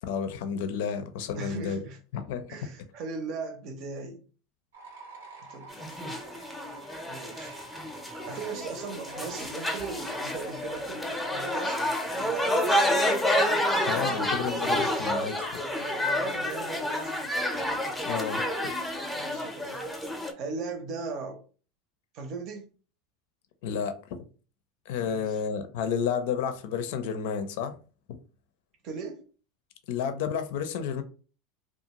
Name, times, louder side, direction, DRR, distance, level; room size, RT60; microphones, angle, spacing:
voice 1, 0.0-1.8 2.1-2.4 13.9-15.6 18.1-18.7 23.6-24.2 24.9-27.7 29.9-31.0, left 7 dB, 70° left, 0.5 m, -31 dB
voice 2, 1.3-2.0 2.5-4.2 5.5-6.2 7.1-7.6 8.2-13.1 13.8-14.8 15.7-17.3 19.1-19.8 20.4-21.4 22.1-22.7 25.0-25.4 28.8-29.2, right 4 dB, 50° right, 0.7 m, -39 dB
sound 1, 4.7-10.8, right 3 dB, 90° right, 0.9 m, -47 dB
sound 2, 5.7-20.3, left 1 dB, 5° left, 0.6 m, -29 dB
2.6 x 2.3 x 2.9 m
hypercardioid pair, 105°, 0 cm